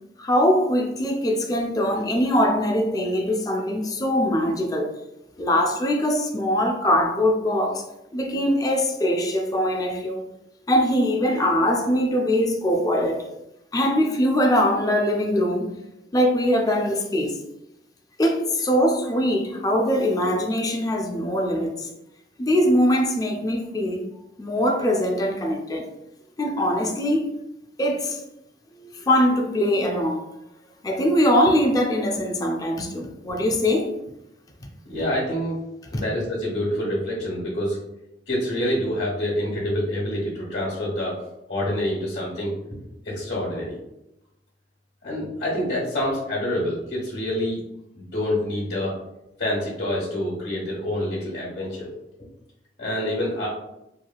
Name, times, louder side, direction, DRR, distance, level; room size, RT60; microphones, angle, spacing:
voice 1, 0.2-4.9 5.4-7.8 8.1-10.3 10.7-13.2 13.7-15.7 16.1-17.4 18.2-21.9 22.4-24.0 24.4-25.9 26.4-27.3 27.8-28.2 28.8-30.2 30.8-33.9, equal, 20° left, 0.4 m, -22 dB
voice 2, 34.9-35.6 35.9-37.8 38.3-41.2 41.5-42.5 43.0-43.8 45.0-47.6 48.0-48.9 49.4-51.9 52.8-53.5, left 1 dB, 75° left, 1.1 m, -26 dB
2.9 x 2.7 x 2.3 m
head